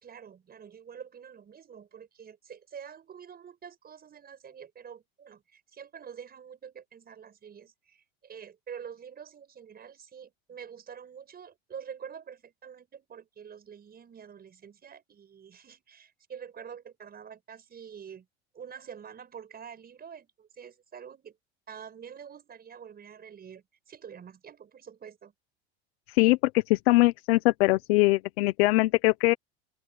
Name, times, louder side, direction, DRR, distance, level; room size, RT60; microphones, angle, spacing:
voice 1, 0.0-18.3 18.5-21.4 21.7-25.3, right 7 dB, 30° right, 5.3 m, -46 dB
voice 2, 26.1-29.3, left 20 dB, 75° left, 1.0 m, -22 dB
open air
supercardioid pair, 105°, 32 cm